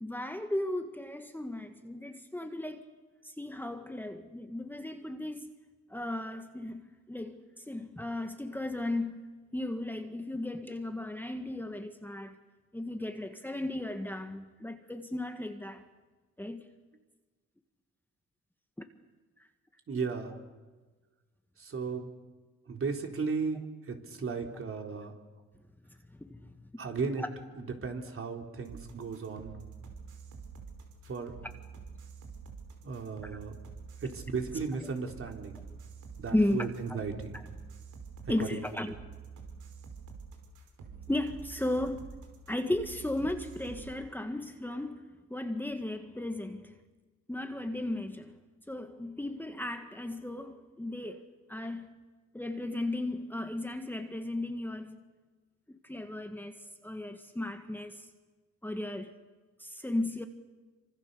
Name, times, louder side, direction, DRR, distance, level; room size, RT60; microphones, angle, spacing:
voice 1, 0.0-2.8 3.2-5.5 5.9-9.2 9.5-12.4 12.7-15.8 16.4-16.7 26.2-26.5 27.2-27.3 33.2-33.3 36.3-36.7 38.3-38.9 41.1-42.0 42.5-46.7 47.3-48.3 48.7-51.2 51.5-51.9 52.3-55.0 55.7-58.1 58.6-59.1 59.6-60.3, left 1 dB, 5° left, 1.7 m, -35 dB
voice 2, 19.9-20.4 21.6-22.1 22.7-25.1 26.8-27.2 27.5-29.6 31.0-31.4 32.8-33.6 34.0-35.6 36.2-37.4 38.3-38.6, right 5 dB, 45° right, 3.9 m, -35 dB
sound 1, 28.6-43.9, right 5 dB, 80° right, 5.0 m, -47 dB
27.0 x 25.5 x 7.0 m
cardioid pair, 90°, 30 cm